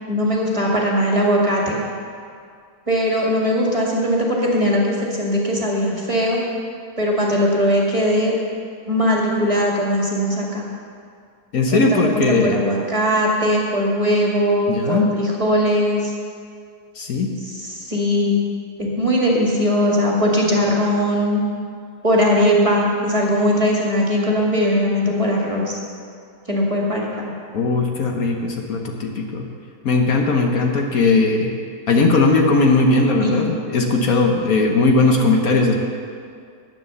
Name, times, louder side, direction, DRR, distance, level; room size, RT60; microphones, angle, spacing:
voice 1, 0.1-1.8 2.9-6.4 7.0-8.3 8.9-10.7 11.7-16.1 17.4-18.4 18.8-21.4 22.0-25.8 26.5-27.3 33.2-33.3, equal, 20° right, -3 dB, 1.7 m, -19 dB
voice 2, 11.5-12.6 14.7-15.1 17.0-17.3 27.5-29.4 29.8-31.5 31.9-35.7, left 3 dB, 60° left, 2 dB, 1.3 m, -18 dB
10.5 x 9.0 x 6.7 m, 2.2 s
omnidirectional pair, 1.8 m